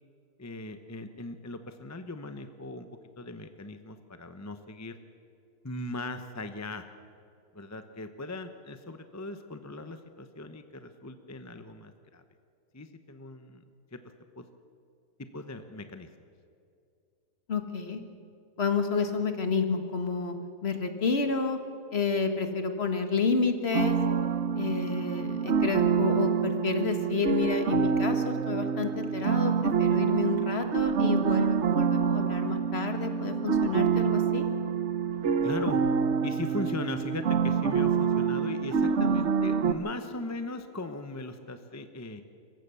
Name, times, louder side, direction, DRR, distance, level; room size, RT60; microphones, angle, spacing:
voice 1, 0.4-2.9 3.2-5.0 5.6-6.9 7.5-12.2 12.7-13.6 13.9-14.0 14.4-14.5 15.3-16.1 35.4-35.8 36.2-42.2, left 2 dB, 15° left, 8 dB, 0.6 m, -39 dB
voice 2, 17.5-18.0 18.6-20.4 20.6-21.6 21.9-24.0 24.5-34.4, left 4 dB, 40° left, 7 dB, 1.6 m, -30 dB
sound 1, 23.7-39.7, right 6 dB, 50° right, 1.0 m, -26 dB
26.5 x 15.5 x 6.9 m, 2.5 s
omnidirectional pair, 1.8 m